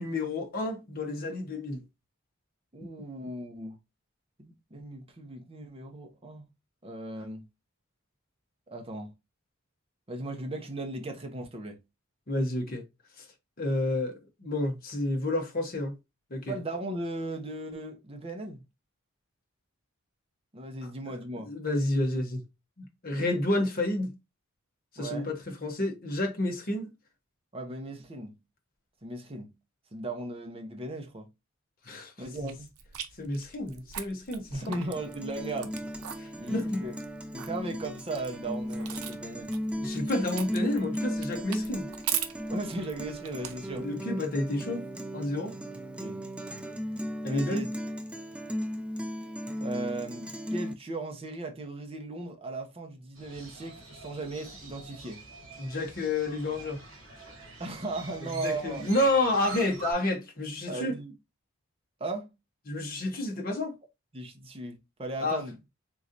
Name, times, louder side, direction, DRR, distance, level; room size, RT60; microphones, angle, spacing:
voice 1, 0.0-1.8 12.3-12.8 13.2-13.3 13.6-16.0 16.3-16.5 21.1-21.2 21.4-22.4 22.8-24.1 24.9-26.9 31.8-32.1 32.4-32.5 33.2-34.7 36.2-36.8 39.7-41.9 43.7-44.9 45.1-45.5 47.2-47.6 55.6-56.8 58.2-60.9 62.7-63.7 65.2-65.4, left 2 dB, 45° left, 0.9 m, -30 dB
voice 2, 2.7-3.8 4.4-6.5 6.8-7.4 8.7-9.1 10.1-11.8 16.5-18.6 20.5-21.5 25.0-25.3 27.5-28.4 29.0-29.5 29.9-31.3 32.2-32.7 34.5-35.9 36.4-37.0 37.3-39.5 42.5-43.9 46.0-46.2 47.2-47.7 49.6-55.2 57.6-58.9 60.7-61.1 62.0-62.3 64.1-65.7, right 2 dB, 25° right, 0.8 m, -37 dB
sound 1, 32.3-43.9, right 9 dB, 85° right, 0.6 m, -40 dB
Guitar, 34.7-50.7, equal, 5° right, 0.4 m, -36 dB
Crow, 53.2-59.9, right 4 dB, 65° right, 1.7 m, -45 dB
3.7 x 3.0 x 2.5 m
head